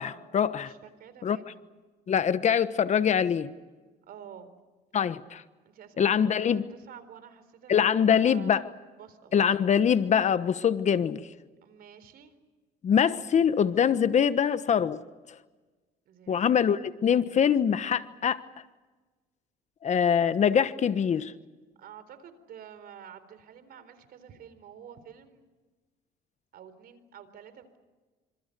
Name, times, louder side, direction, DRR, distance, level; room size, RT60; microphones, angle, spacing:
voice 1, 0.0-0.7 1.2-1.4 2.1-3.5 4.9-5.4 6.0-6.6 7.7-8.6 9.3-11.3 12.8-15.0 16.3-18.4 19.8-21.3, left 8 dB, 45° left, 13 dB, 1.2 m, -24 dB
voice 2, 0.7-1.6 4.1-4.6 5.6-6.1 6.4-8.7 9.0-9.3 11.6-12.3 16.1-17.0 21.8-25.4 26.5-27.8, right 8 dB, 65° right, 12 dB, 4.0 m, -49 dB
27.0 x 26.0 x 6.9 m, 1.3 s
cardioid pair, 110°, 17 cm